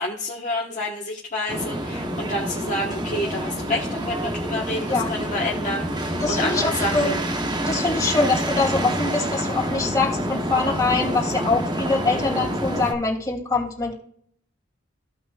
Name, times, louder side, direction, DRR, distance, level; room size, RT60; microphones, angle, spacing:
voice 1, 0.0-7.2, left 1 dB, 40° left, -3 dB, 1.3 m, -29 dB
sound 1, 1.5-12.9, right 1 dB, 20° right, 0.9 m, -27 dB
voice 2, 6.2-7.2 7.7-13.9, left 3 dB, 20° left, -3 dB, 2.7 m, -24 dB
15.5 x 5.8 x 2.4 m, 0.62 s
head